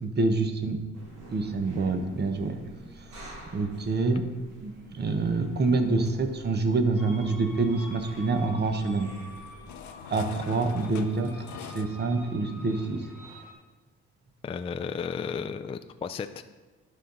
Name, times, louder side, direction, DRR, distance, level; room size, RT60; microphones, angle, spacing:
voice 1, 0.0-0.8 1.3-2.6 3.2-4.2 4.6-9.1 10.1-13.1, right 3 dB, 35° right, 7 dB, 1.0 m, -27 dB
sound 1, 0.9-10.1, right 1 dB, 80° right, 2.1 m, -49 dB
sound 2, 5.1-11.9, left 8 dB, 70° left, 0.7 m, -46 dB
sound 3, 7.0-13.5, left 1 dB, 5° right, 2.7 m, -49 dB
voice 2, 14.4-16.4, left 6 dB, 20° left, 9 dB, 0.3 m, -33 dB
11.5 x 5.6 x 3.9 m, 1.2 s
cardioid pair, 90°, 30 cm